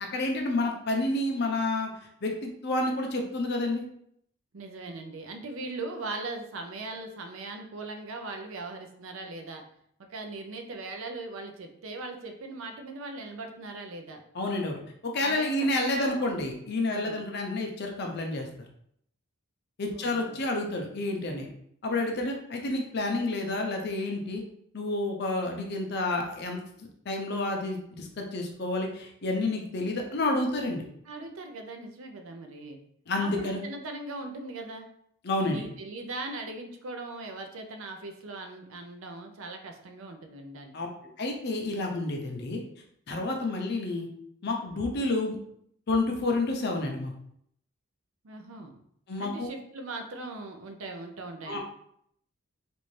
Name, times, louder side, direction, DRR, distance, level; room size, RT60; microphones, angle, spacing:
voice 1, 0.1-1.9 2.2-3.8 14.3-14.8 15.0-18.5 19.8-21.5 21.8-24.4 24.7-26.6 27.1-30.8 33.1-33.6 35.2-35.6 40.7-40.9 41.2-42.6 43.1-44.1 44.4-45.4 45.9-47.1 49.1-49.5 51.5-51.6, left 2 dB, 50° left, 2 dB, 0.6 m, -29 dB
voice 2, 4.5-9.6 10.0-14.2 15.2-16.3 16.9-17.2 19.9-20.4 31.1-32.8 33.2-34.9 35.4-40.7 48.2-48.8 49.2-51.6, right 2 dB, 65° right, 4 dB, 0.5 m, -40 dB
3.1 x 2.6 x 3.1 m, 0.70 s
head